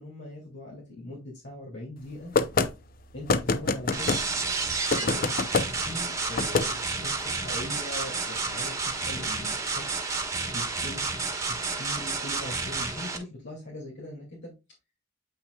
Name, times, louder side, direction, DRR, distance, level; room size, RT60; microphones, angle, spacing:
voice 1, 0.0-2.3 3.1-4.2 5.0-5.3 5.8-10.1 10.5-11.1 11.5-14.5, left 1 dB, 65° left, -3 dB, 2.5 m, -41 dB
sound 1, 2.3-2.7 3.3-4.2 4.9-5.7 6.4-6.7, left 4 dB, 45° left, 0.6 m, -24 dB
sound 2, 3.9-13.2, right 4 dB, 15° right, 1.3 m, -30 dB
8.4 x 5.9 x 2.3 m, 0.26 s
head